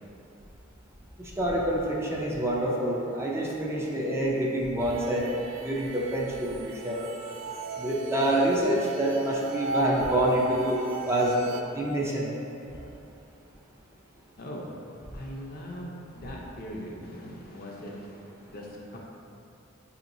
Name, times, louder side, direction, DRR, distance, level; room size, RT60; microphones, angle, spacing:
voice 1, 1.2-5.2 5.6-7.0 7.8-11.5 11.7-12.3, right 1 dB, 15° right, -4 dB, 0.4 m, -27 dB
sound 1, 4.8-11.6, right 2 dB, 85° right, 0.3 m, -37 dB
voice 2, 15.1-19.0, equal, 50° left, -2 dB, 0.6 m, -40 dB
6.2 x 2.9 x 2.6 m, 2.8 s
head